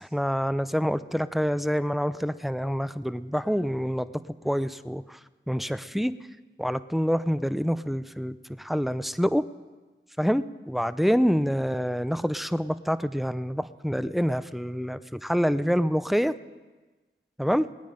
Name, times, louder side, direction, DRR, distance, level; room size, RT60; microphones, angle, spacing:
voice 1, 0.0-4.1 4.4-5.2 5.5-6.1 6.6-9.4 10.2-16.3 17.4-17.7, equal, ahead, 14 dB, 0.6 m, -26 dB
20.5 x 9.3 x 5.1 m, 1.3 s
wide cardioid pair, 45°, 21 cm